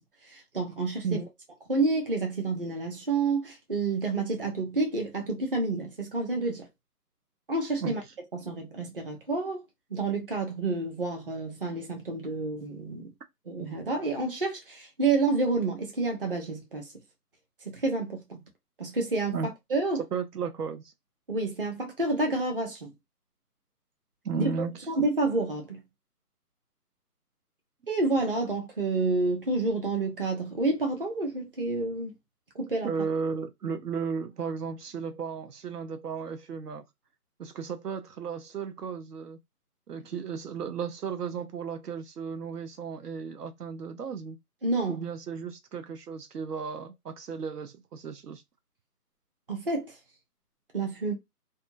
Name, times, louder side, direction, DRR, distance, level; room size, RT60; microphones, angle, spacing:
voice 1, 0.3-1.2 1.7-6.6 7.5-8.0 8.3-9.6 9.9-13.1 13.5-16.9 17.7-18.4 18.8-20.0 21.3-22.9 24.4-24.5 24.9-25.8 27.9-32.1 32.5-32.9 44.6-45.0 49.5-49.9 50.7-51.1, right 3 dB, 35° right, 0.7 m, -29 dB
voice 2, 20.1-20.9 24.2-24.8 32.8-36.8 37.4-39.4 39.9-44.4 44.9-48.4, right 6 dB, 75° right, 0.7 m, -34 dB
2.6 x 2.3 x 2.5 m
figure-of-eight pair, 160°, 48 cm